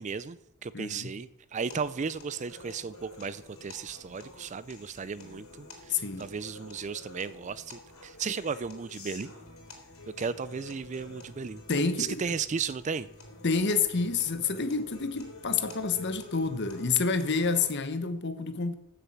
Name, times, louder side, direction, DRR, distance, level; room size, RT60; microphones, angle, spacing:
voice 1, 0.0-9.3 10.2-11.6 12.0-13.1, right 5 dB, 30° right, 0.4 m, -35 dB
voice 2, 0.7-1.1 5.9-6.3 11.7-12.3 13.4-18.7, left 4 dB, 50° left, 1.0 m, -28 dB
sound 1, 1.7-17.7, left 2 dB, 70° left, 3.3 m, -48 dB
15.0 x 6.9 x 5.9 m
head